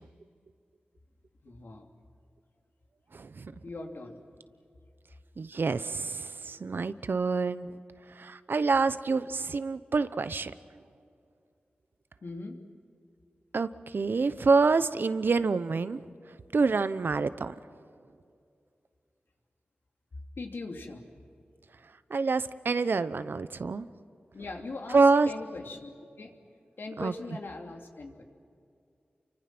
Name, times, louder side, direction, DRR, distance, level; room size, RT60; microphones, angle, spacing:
voice 1, 1.4-1.9 3.6-4.2 12.2-12.6 20.4-21.0 24.3-25.9 26.2-26.4 26.8-28.2, left 3 dB, 75° left, 3 dB, 2.7 m, -40 dB
voice 2, 3.1-3.5 5.4-7.7 8.2-10.5 13.5-16.0 16.5-17.5 22.1-23.9 24.9-25.3 27.0-27.1, right 4 dB, 70° right, 13 dB, 0.9 m, -27 dB
28.5 x 24.5 x 6.1 m, 2.4 s
cardioid pair, 50°, 4 cm